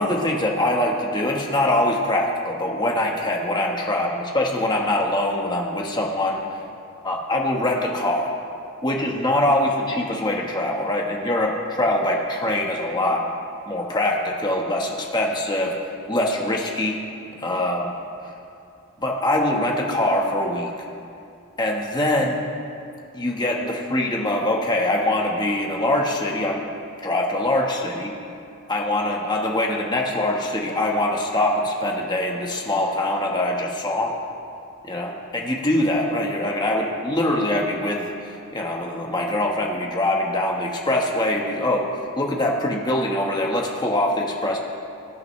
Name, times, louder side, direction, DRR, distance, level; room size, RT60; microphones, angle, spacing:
voice 1, 0.0-6.4 7.0-8.3 8.8-13.3 13.6-15.7 16.1-17.0 17.4-17.9 18.2-18.3 19.0-20.7 21.6-22.4 23.1-26.6 27.0-28.1 28.7-34.2 34.8-44.6, left 1 dB, 20° left, -1 dB, 1.3 m, -23 dB
21.5 x 9.2 x 3.2 m, 2.5 s
head